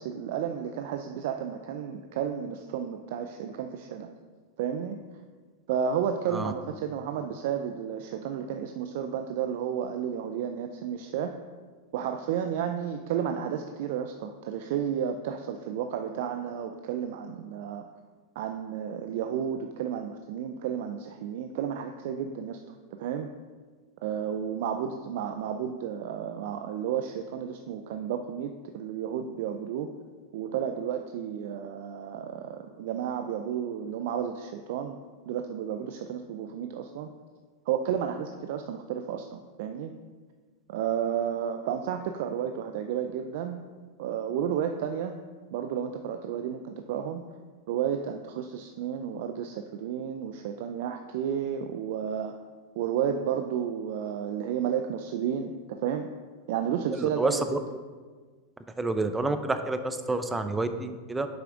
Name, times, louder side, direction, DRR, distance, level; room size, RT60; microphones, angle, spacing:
voice 1, 0.0-4.1 4.6-5.0 5.7-11.3 11.9-17.8 18.4-22.6 23.0-23.3 24.0-29.9 30.3-35.0 35.3-37.1 37.7-39.9 40.7-43.6 44.0-45.2 45.5-47.2 47.7-52.4 52.8-56.1 56.5-57.6, right 8 dB, 65° right, 6 dB, 0.4 m, -32 dB
voice 2, 57.0-57.6 58.8-61.3, right 2 dB, 10° right, 9 dB, 0.6 m, -29 dB
7.0 x 5.8 x 3.8 m, 1.5 s
hypercardioid pair, 105°, 0 cm